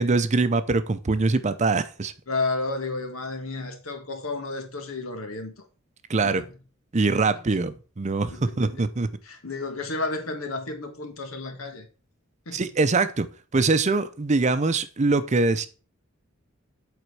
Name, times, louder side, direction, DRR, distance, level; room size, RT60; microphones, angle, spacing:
voice 1, 0.0-2.1 6.1-6.4 6.9-9.1 12.5-13.3 13.5-15.7, right 3 dB, 35° right, 0.6 m, -23 dB
voice 2, 2.3-5.5 6.2-6.5 7.1-7.4 8.3-8.8 9.2-11.9 12.5-12.7, left 3 dB, 85° left, 1.7 m, -32 dB
8.0 x 4.4 x 4.7 m
head